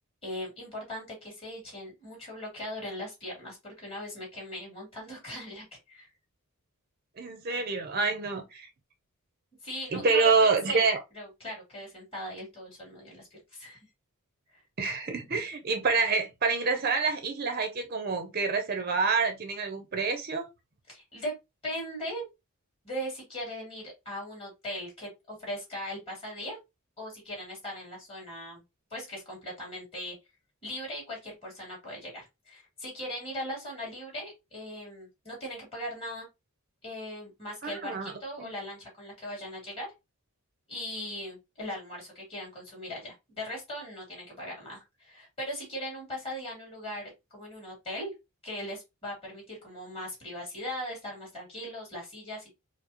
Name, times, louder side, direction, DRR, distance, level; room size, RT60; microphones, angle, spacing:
voice 1, 0.2-6.1 9.6-10.8 11.1-13.8 20.9-21.3 21.6-22.2 22.8-26.6 27.0-28.6 28.9-30.2 30.6-36.3 36.8-39.9 40.7-48.1 48.4-52.5, equal, 25° left, 2.2 m, -39 dB
voice 2, 7.2-8.7 9.9-11.0 14.8-20.5 37.6-38.1 38.4-38.5, right 4 dB, 45° right, 0.5 m, -27 dB
4.6 x 2.1 x 2.8 m
head